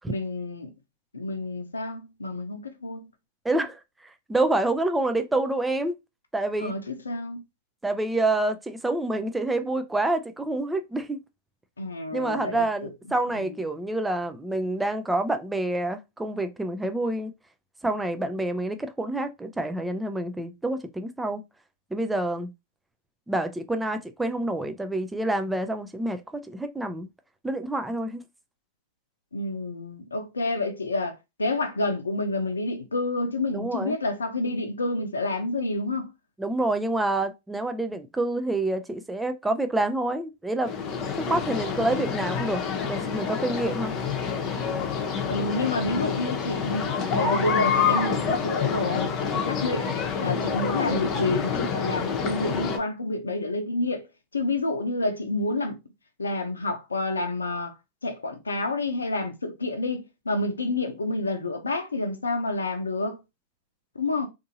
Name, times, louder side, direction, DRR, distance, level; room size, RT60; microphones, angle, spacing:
voice 1, 0.1-0.7 1.1-3.1 6.6-7.4 11.8-12.9 13.3-13.6 29.3-36.1 45.3-49.9 50.2-54.1 54.3-55.8 56.2-57.7 58.0-63.2 64.0-64.3, left 2 dB, 90° left, 0.6 m, -29 dB
voice 2, 3.4-3.8 4.3-6.0 6.3-6.7 7.8-11.2 12.1-17.3 17.8-21.4 21.9-22.5 23.3-27.1 27.4-28.2 33.5-33.9 36.4-40.7 41.2-43.9, right 2 dB, 10° right, 0.4 m, -27 dB
sound 1, 40.6-52.8, left 6 dB, 40° left, 0.8 m, -27 dB
2.7 x 2.6 x 2.7 m
hypercardioid pair, 100°, 0 cm